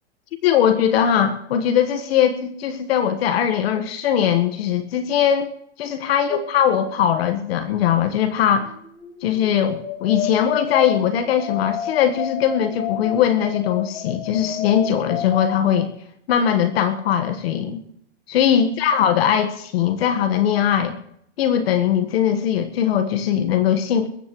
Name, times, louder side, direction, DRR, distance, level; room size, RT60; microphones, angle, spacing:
voice 1, 0.4-5.5 5.8-8.7 9.2-15.9 16.3-17.8 18.3-21.0 21.4-24.1, left 9 dB, 55° left, 9 dB, 1.5 m, -20 dB
sound 1, 6.9-7.6 7.9-15.8, left 9 dB, 70° left, 5.5 m, -31 dB
21.0 x 15.0 x 3.1 m, 0.70 s
supercardioid pair, 160°, 36 cm